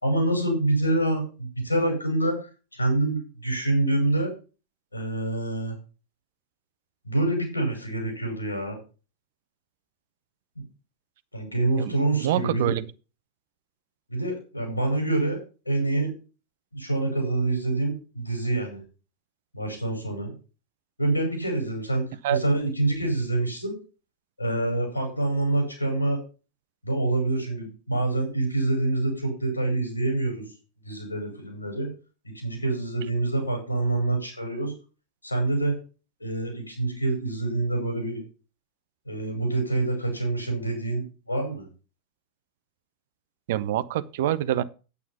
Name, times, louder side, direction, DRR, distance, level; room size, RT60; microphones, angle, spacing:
voice 1, 0.0-4.3 4.9-5.8 7.0-8.8 10.6-10.7 11.3-12.7 14.1-16.1 16.7-18.8 19.5-20.3 21.0-23.8 24.4-26.2 26.8-30.4 30.8-31.9 32.2-34.7 35.2-35.8 36.2-38.2 39.1-41.7, right 2 dB, 85° left, 5.6 m, -26 dB
voice 2, 11.8-12.9 22.2-22.4 43.5-44.6, right 12 dB, 55° right, 0.8 m, -26 dB
9.4 x 8.5 x 5.7 m
figure-of-eight pair, 90°, 0 cm